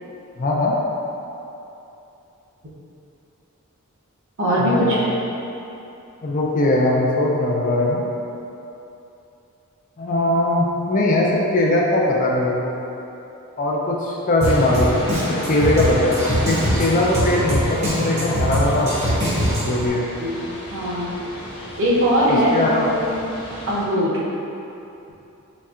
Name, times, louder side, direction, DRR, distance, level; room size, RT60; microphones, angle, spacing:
voice 1, 0.4-0.8 4.6-5.0 6.2-8.0 10.0-12.8 13.6-15.0 15.5-19.1 19.6-20.1 22.3-22.9, left 1 dB, 35° left, -2 dB, 0.4 m, -20 dB
voice 2, 4.4-5.1 20.2-21.1 21.8-23.3 23.7-24.2, equal, 60° right, -7 dB, 0.8 m, -21 dB
sound 1, 14.4-23.8, left 1 dB, 85° left, 1.0 m, -34 dB
Drum kit, 14.4-19.9, equal, 30° right, 0.7 m, -23 dB
4.1 x 3.2 x 2.4 m, 2.9 s
head